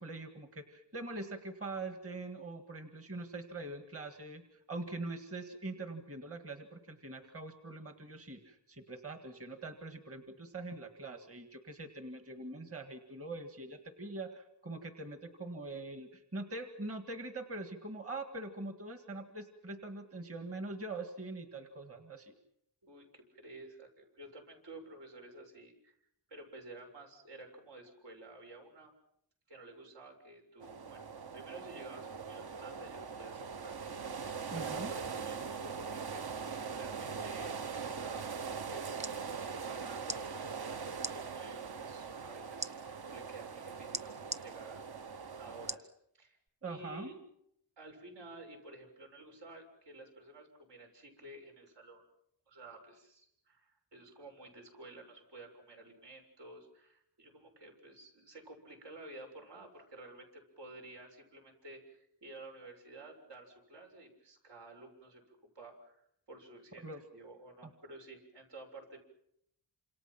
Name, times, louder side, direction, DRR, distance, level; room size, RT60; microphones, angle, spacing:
voice 1, 0.0-22.3 34.5-34.9 46.6-47.1 66.8-67.0 67.6-67.7, right 2 dB, 35° right, 6 dB, 1.9 m, -43 dB
voice 2, 22.8-26.0 26.3-28.9 29.5-31.0 31.3-33.8 34.4-38.4 38.7-39.0 39.6-42.7 43.1-45.9 46.2-46.4 46.7-47.2 47.8-52.0 52.5-69.0, right 2 dB, 80° right, 3 dB, 6.8 m, -52 dB
sound 1, 30.6-45.8, right 5 dB, 60° right, 1.3 m, -41 dB
sound 2, 39.0-39.2 40.0-40.2 41.0-41.2 42.6-42.7 43.9-44.4 45.7-45.9 46.5-46.6, equal, 15° right, 1.1 m, -38 dB
29.0 x 27.0 x 6.0 m, 0.76 s
wide cardioid pair, 160°, 42 cm